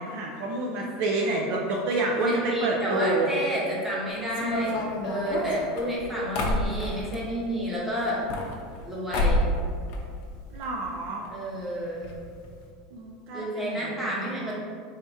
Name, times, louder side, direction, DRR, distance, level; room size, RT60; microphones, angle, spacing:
voice 1, 0.0-3.3 10.5-11.3 12.9-14.5, right 2 dB, 45° right, -1 dB, 0.4 m, -28 dB
voice 2, 2.2-8.2 8.8-9.5 11.3-12.1 13.3-14.5, right 1 dB, 5° right, -6 dB, 0.9 m, -30 dB
sound 1, 4.3-7.2 8.1-8.9 9.1-9.6 9.9-10.7 10.9-11.0 11.2-11.3 12.0-12.1 12.4-12.6, left 1 dB, 45° left, 0.6 m, -28 dB
3.4 x 2.8 x 4.7 m, 2.1 s
supercardioid pair, 165°, 3 cm